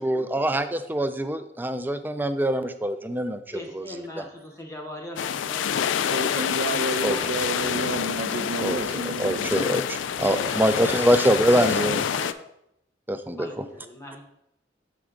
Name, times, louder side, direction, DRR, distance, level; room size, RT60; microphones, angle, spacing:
voice 1, 0.0-3.4 3.7-3.8 7.0-7.2 8.6-12.0 13.1-13.5, right 1 dB, 10° right, 10 dB, 0.3 m, -24 dB
voice 2, 3.5-6.2 6.7-7.4 10.3-12.3 13.4-14.2, left 1 dB, 15° left, 1 dB, 0.7 m, -40 dB
sound 1, 5.2-12.3, left 8 dB, 75° left, 0.3 m, -27 dB
voice 3, 6.1-9.5, right 2 dB, 75° right, 8 dB, 0.7 m, -30 dB
7.1 x 4.6 x 3.7 m, 0.79 s
head